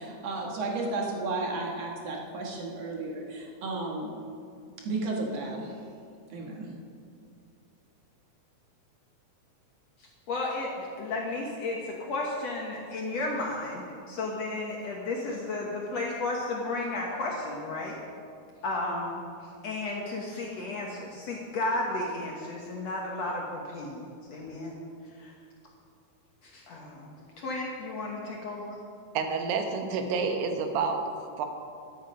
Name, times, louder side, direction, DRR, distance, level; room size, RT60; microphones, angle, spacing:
voice 1, 0.0-4.1 4.9-5.7 6.3-6.7, right 3 dB, 55° right, -1 dB, 1.9 m, -33 dB
voice 2, 10.0-18.0 18.6-24.7 25.0-25.3 26.4-28.8, left 2 dB, 70° left, -2 dB, 1.6 m, -33 dB
voice 3, 29.1-31.0 31.4-31.5, right 5 dB, 85° right, 5 dB, 3.2 m, -28 dB
13.0 x 11.0 x 5.3 m, 2.4 s
omnidirectional pair, 4.6 m